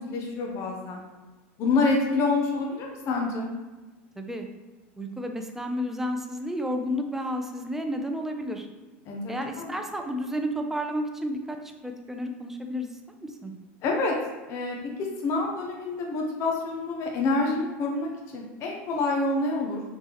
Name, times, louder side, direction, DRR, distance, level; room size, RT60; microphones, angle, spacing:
voice 1, 0.1-1.0 1.6-3.5 9.1-9.7 13.8-14.2 14.5-14.8 15.2-19.8, left 3 dB, 45° left, 0 dB, 0.7 m, -27 dB
voice 2, 4.2-4.5 5.0-8.7 9.3-12.9 13.2-13.5, equal, 5° right, 4 dB, 0.4 m, -31 dB
3.3 x 2.9 x 3.5 m, 1.2 s
supercardioid pair, 110°, 7 cm